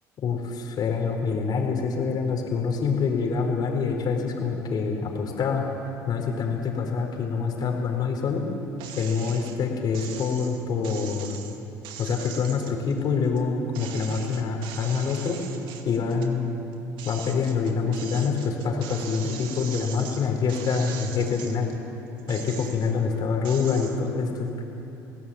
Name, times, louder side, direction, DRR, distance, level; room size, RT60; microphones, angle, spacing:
voice 1, 0.2-5.6 6.1-8.4 8.9-11.4 12.0-15.4 15.8-16.6 17.0-21.7 22.3-24.5, left 5 dB, 55° left, 1 dB, 4.4 m, -26 dB
sound 1, 8.8-9.6 9.9-13.4 13.7-16.3 16.7-21.8 22.2-23.0 23.4-24.0, right 8 dB, 70° right, 2.3 m, -41 dB
26.5 x 17.0 x 8.8 m, 3.0 s
supercardioid pair, 75°, 9 cm